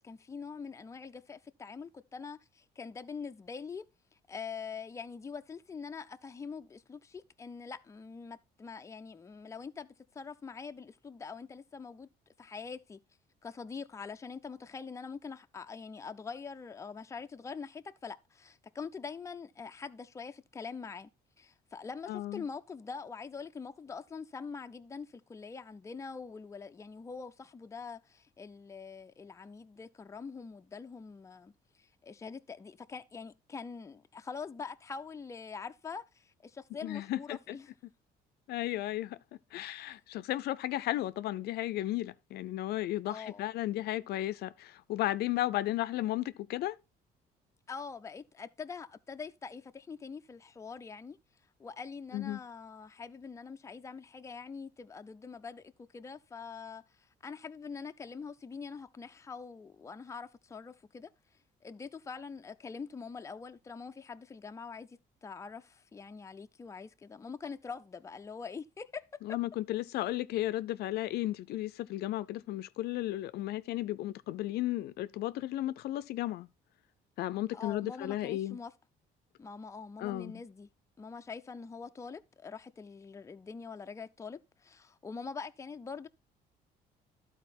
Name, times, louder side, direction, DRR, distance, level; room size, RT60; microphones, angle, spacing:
voice 1, 0.0-3.9 4.3-9.9 10.1-12.1 12.4-13.0 13.4-21.1 21.4-31.5 31.8-37.7 39.8-39.9 43.1-43.4 47.7-51.2 51.6-56.8 57.2-61.1 61.6-69.4 77.5-78.7 79.4-80.7 81.0-86.1, left 5 dB, 15° left, 0.5 m, -44 dB
voice 2, 22.1-22.4 36.8-37.6 38.5-39.2 39.5-46.8 52.1-52.4 69.2-76.5 77.2-78.6 80.0-80.4, left 15 dB, 70° left, 0.5 m, -34 dB
12.0 x 4.3 x 4.2 m
cardioid pair, 110°, 17 cm